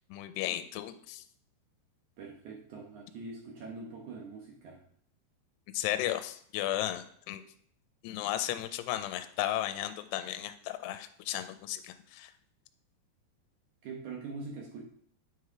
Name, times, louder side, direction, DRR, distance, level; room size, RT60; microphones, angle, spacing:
voice 1, 0.1-1.2 5.7-7.4 8.0-12.3, left 13 dB, 85° left, 10 dB, 2.7 m, -34 dB
voice 2, 2.2-4.8 13.8-14.8, right 4 dB, 70° right, 0 dB, 1.8 m, -43 dB
8.9 x 4.9 x 4.7 m, 0.63 s
omnidirectional pair, 4.9 m